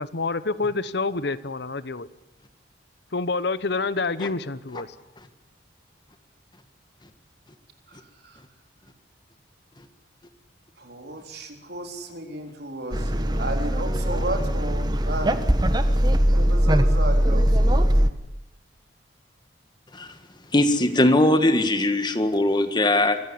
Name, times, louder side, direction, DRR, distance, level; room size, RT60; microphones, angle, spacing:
voice 1, 0.0-2.1 3.1-4.9, left 3 dB, 60° left, 15 dB, 1.0 m, -27 dB
voice 2, 10.8-15.4 16.3-17.9, right 1 dB, 60° right, 4 dB, 4.0 m, -33 dB
sound 1, 12.9-18.1, equal, 25° right, 1.2 m, -21 dB
voice 3, 20.5-23.2, left 1 dB, 25° left, 9 dB, 1.7 m, -20 dB
25.0 x 15.5 x 9.9 m, 0.95 s
head